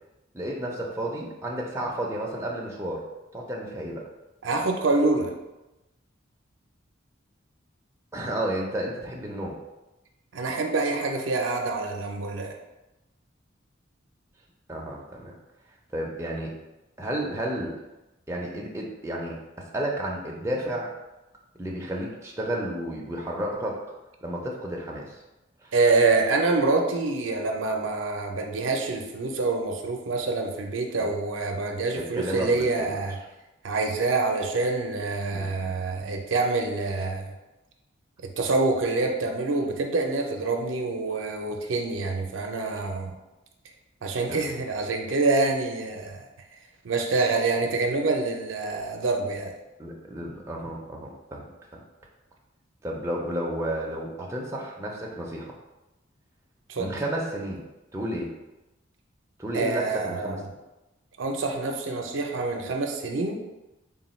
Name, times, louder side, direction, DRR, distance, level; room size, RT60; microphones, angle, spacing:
voice 1, 0.3-3.0 3.3-4.1 8.1-9.6 14.7-15.3 15.9-16.5 17.0-17.7 18.3-20.9 21.6-23.8 24.2-25.1 25.6-25.7 31.0-31.1 32.0-32.9 35.3-36.1 44.3-44.6 49.8-51.8 52.8-55.5 56.8-57.6 57.9-58.3 59.4-60.4, right 1 dB, 15° right, -2 dB, 0.5 m, -32 dB
voice 2, 4.4-5.3 10.3-12.5 25.7-33.2 33.6-37.3 38.4-43.2 44.0-46.3 46.8-49.5 56.7-56.9 59.5-60.5 61.2-63.4, right 3 dB, 75° right, 2 dB, 0.5 m, -26 dB
3.8 x 2.3 x 4.2 m, 1.0 s
head